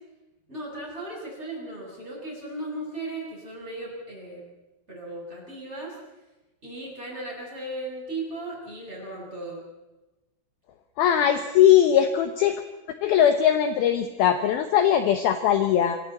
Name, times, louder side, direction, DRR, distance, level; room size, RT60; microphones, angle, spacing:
voice 1, 0.5-4.4 4.9-6.0 6.6-9.6, right 2 dB, 10° right, -4 dB, 8.1 m, -36 dB
voice 2, 11.0-12.6 13.0-16.0, left 10 dB, 75° left, 8 dB, 2.2 m, -20 dB
26.5 x 24.0 x 4.2 m, 1.0 s
omnidirectional pair, 5.7 m